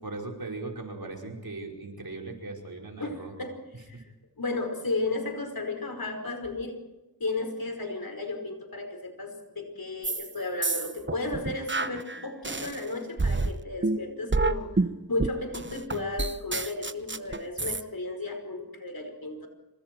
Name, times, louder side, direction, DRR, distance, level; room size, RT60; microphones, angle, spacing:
voice 1, 0.0-3.3 3.9-4.0, right 3 dB, 75° right, 1 dB, 5.2 m, -38 dB
voice 2, 3.0-4.1 4.4-6.8 7.2-19.5, left 2 dB, 70° left, 5 dB, 5.2 m, -34 dB
sound 1, 10.0-10.3 10.6-12.8 13.2-17.8, right 3 dB, 30° right, 1.0 m, -28 dB
26.5 x 25.0 x 4.7 m, 1.1 s
wide cardioid pair, 45°, 36 cm